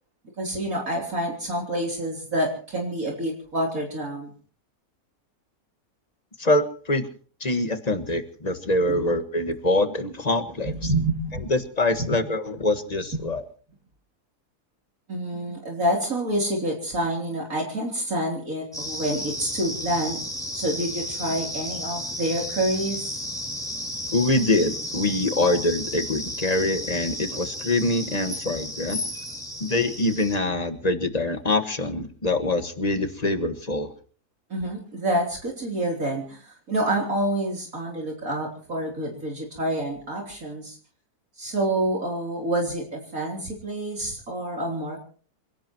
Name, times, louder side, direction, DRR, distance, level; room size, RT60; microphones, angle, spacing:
voice 1, 0.4-4.3 8.9-9.1 10.7-11.5 12.0-12.2 13.1-13.3 15.1-20.2 20.5-23.2 29.1-29.2 34.5-40.8 41.4-45.0, right 1 dB, 60° right, -1 dB, 3.9 m, -28 dB
voice 2, 6.4-7.1 7.4-10.9 11.5-13.4 24.1-29.0 29.6-33.9, left 2 dB, 25° left, 9 dB, 1.6 m, -24 dB
sound 1, 18.7-30.4, equal, ahead, 4.5 m, -33 dB
27.5 x 17.5 x 3.0 m, 0.42 s
omnidirectional pair, 1.6 m